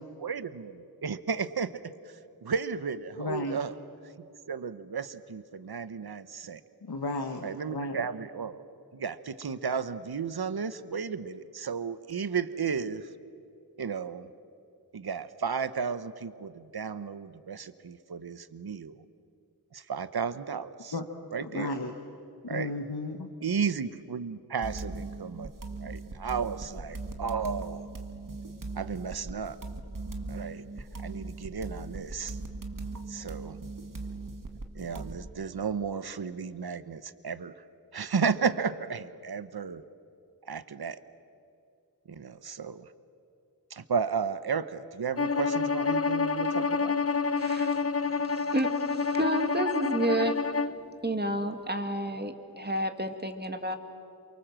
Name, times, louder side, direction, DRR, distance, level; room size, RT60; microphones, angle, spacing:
voice 1, 0.2-3.7 4.2-6.6 7.4-8.7 8.9-13.1 13.8-14.3 14.9-19.0 19.7-20.9 21.3-21.7 22.5-22.7 23.4-25.5 25.8-27.9 28.7-29.6 30.3-32.4 33.1-33.6 34.7-37.6 37.9-39.8 40.4-41.0 42.1-42.9 43.7-47.0, right 6 dB, 80° right, 13 dB, 0.9 m, -33 dB
voice 2, 3.2-3.6 6.8-7.5 7.7-8.0 20.9-21.0 21.4-21.9 22.4-23.3, left 2 dB, 90° left, 4 dB, 1.5 m, -33 dB
sound 1, 24.6-35.3, right 3 dB, 60° right, 1.8 m, -39 dB
Bowed string instrument, 45.2-50.8, left 5 dB, 40° left, 0.9 m, -28 dB
voice 3, 47.4-50.4 51.0-53.8, right 1 dB, 25° right, 6 dB, 2.1 m, -31 dB
28.0 x 24.5 x 7.6 m, 2.6 s
wide cardioid pair, 60°, 37 cm